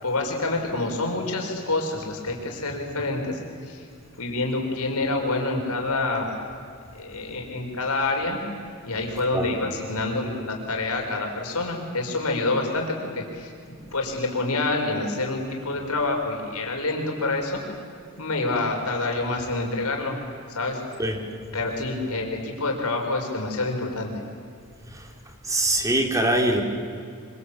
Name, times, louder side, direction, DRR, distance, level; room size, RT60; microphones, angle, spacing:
voice 1, 0.0-3.8 4.2-6.3 6.9-8.4 8.8-13.5 13.9-17.6 18.2-20.2 20.5-20.8 21.5-24.2, left 2 dB, 90° left, 1 dB, 5.3 m, -27 dB
voice 2, 25.5-26.6, right 1 dB, 15° right, 3 dB, 3.1 m, -22 dB
25.5 x 25.0 x 8.6 m, 2.4 s
head